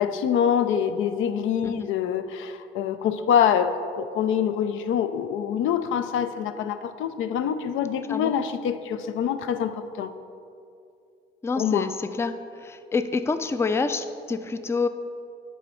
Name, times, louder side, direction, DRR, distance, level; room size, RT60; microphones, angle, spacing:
voice 1, 0.0-10.1 11.6-11.9, left 8 dB, 80° left, 10 dB, 0.5 m, -25 dB
voice 2, 11.4-12.3 12.6-14.9, left 4 dB, 15° left, 10 dB, 0.3 m, -27 dB
8.3 x 4.2 x 5.6 m, 2.5 s
cardioid pair, 90°, 20 cm